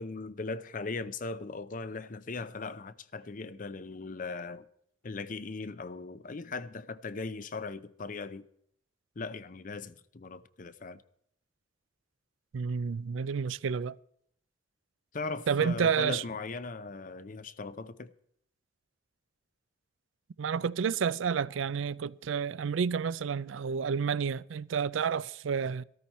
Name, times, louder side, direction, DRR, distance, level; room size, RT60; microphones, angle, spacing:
voice 1, 0.0-4.7 5.0-8.5 9.2-11.0 15.1-18.1, left 3 dB, 45° left, 0.6 m, -39 dB
voice 2, 12.5-13.9 15.5-16.2 20.4-25.8, right 6 dB, 90° right, 0.4 m, -30 dB
14.0 x 13.5 x 4.2 m
head